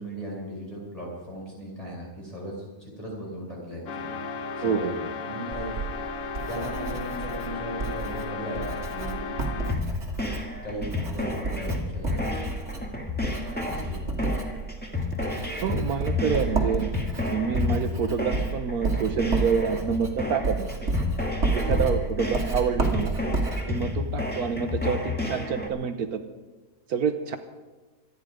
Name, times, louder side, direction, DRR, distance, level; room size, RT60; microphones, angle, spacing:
voice 1, 0.0-4.1 4.6-5.0 5.3-5.7 6.5-9.3 10.6-12.5 13.7-14.1, equal, 20° left, -4 dB, 5.8 m, -37 dB
sound 1, 3.9-9.9, left 5 dB, 60° left, 1.2 m, -35 dB
voice 2, 4.6-5.0 15.6-16.9 17.3-20.7 21.5-23.1 23.7-26.2 26.9-27.4, right 6 dB, 70° right, 9 dB, 1.3 m, -27 dB
Writing, 5.5-25.0, right 3 dB, 45° right, 2.2 m, -31 dB
sound 2, 9.7-25.7, left 3 dB, 5° left, 1.8 m, -31 dB
26.0 x 9.9 x 5.1 m, 1.2 s
omnidirectional pair, 1.7 m